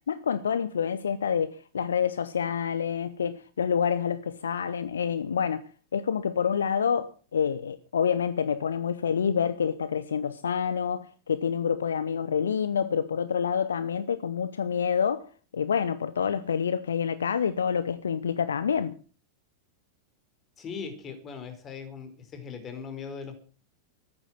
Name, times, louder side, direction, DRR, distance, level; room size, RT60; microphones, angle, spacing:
voice 1, 0.0-15.3 15.5-18.9, left 7 dB, 70° left, 0.8 m, -27 dB
voice 2, 20.6-23.3, left 6 dB, 25° left, 4.7 m, -39 dB
14.5 x 11.0 x 7.6 m
figure-of-eight pair, 90°, 0 cm